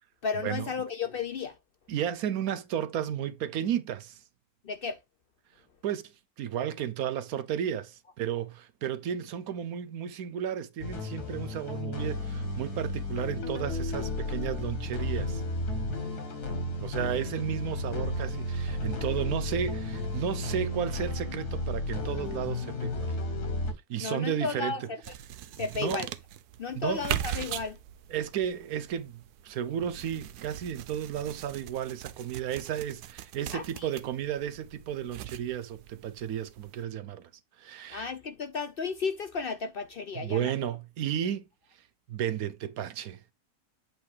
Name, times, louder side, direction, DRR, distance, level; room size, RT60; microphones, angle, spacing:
voice 1, 0.2-1.6 4.6-5.0 24.0-25.0 25.6-26.1 26.6-27.8 33.5-33.9 37.9-40.5, left 5 dB, 60° left, 0.6 m, -33 dB
voice 2, 1.9-4.2 5.8-6.1 6.4-15.4 16.8-23.2 23.9-24.9 25.8-26.0 26.7-27.1 28.1-37.3 37.6-38.1 40.1-41.5 42.1-43.2, right 9 dB, 75° right, 1.1 m, -33 dB
sound 1, 10.8-23.7, left 2 dB, 85° left, 2.2 m, -33 dB
sound 2, 25.0-36.8, right 11 dB, 90° right, 1.2 m, -40 dB
8.1 x 2.9 x 4.7 m
omnidirectional pair, 1.6 m